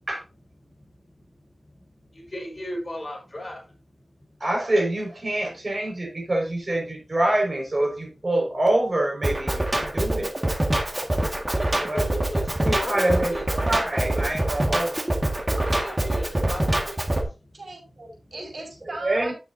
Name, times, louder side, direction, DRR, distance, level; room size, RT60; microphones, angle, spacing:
voice 1, 0.6-4.3 9.9-10.0 10.8-13.4 15.4-17.6 18.0-18.3, equal, 40° left, 0 dB, 5.5 m, -38 dB
voice 2, 4.4-10.3 11.8-12.0 12.6-15.0 19.0-19.3, right 1 dB, 45° right, 1 dB, 5.1 m, -25 dB
Drum kit, 9.2-17.2, right 1 dB, 30° right, 1.8 m, -25 dB
voice 3, 17.5-19.3, right 2 dB, 75° right, 1 dB, 4.9 m, -38 dB
10.0 x 9.3 x 2.7 m, 0.30 s
wide cardioid pair, 60°, 0 cm